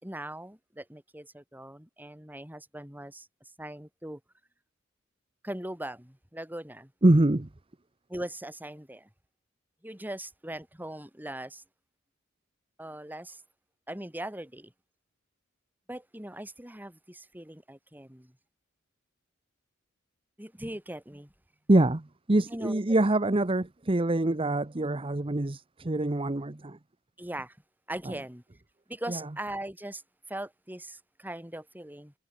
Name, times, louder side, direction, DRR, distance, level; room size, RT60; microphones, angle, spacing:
voice 1, 0.0-3.3 3.6-4.2 5.4-6.9 8.1-9.1 9.8-11.6 12.8-13.4 13.9-14.7 15.9-18.3 20.4-21.3 22.5-22.8 27.2-27.6 27.9-28.4 28.9-30.0 30.3-32.1, right 1 dB, 10° right, 4.2 m, -40 dB
voice 2, 7.0-7.5 21.7-26.8 28.1-28.2 29.1-29.2, right 1 dB, 25° right, 0.9 m, -25 dB
head